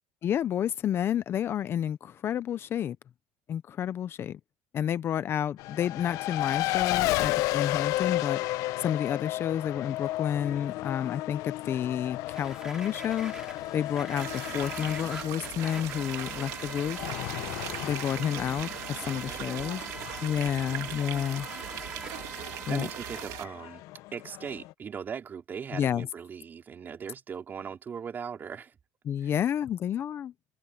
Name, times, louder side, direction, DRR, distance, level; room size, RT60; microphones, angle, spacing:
voice 1, 0.2-3.0 3.5-4.4 4.7-17.0 17.8-19.8 20.2-21.5 22.7-22.9 25.7-26.1 29.0-30.3, left 9 dB, 40° left, 0.8 m, -30 dB
Race car auto racing, 5.6-24.7, left 18 dB, 65° left, 0.9 m, -34 dB
sound 1, 12.3-23.2, right 2 dB, 10° right, 3.5 m, -44 dB
sound 2, 14.2-23.5, right 16 dB, 60° right, 2.2 m, -40 dB
voice 2, 19.0-19.9 20.5-20.9 22.4-23.8 24.1-28.8 29.2-29.3, right 7 dB, 30° right, 4.5 m, -40 dB
supercardioid pair, 120°, 6 cm